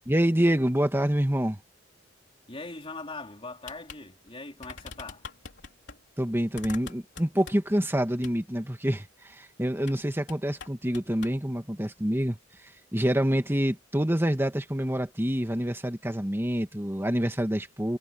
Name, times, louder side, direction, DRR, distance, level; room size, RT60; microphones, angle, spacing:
voice 1, 0.1-1.6 6.2-12.4 12.9-18.0, equal, 10° right, 1.8 m, -27 dB
voice 2, 2.5-5.3, left 3 dB, 30° left, 3.6 m, -41 dB
sound 1, 3.7-4.0 4.3-4.4 4.6-6.0 6.5-7.8 8.2-8.4 9.8-10.0 10.3-11.4, left 5 dB, 60° left, 3.8 m, -44 dB
head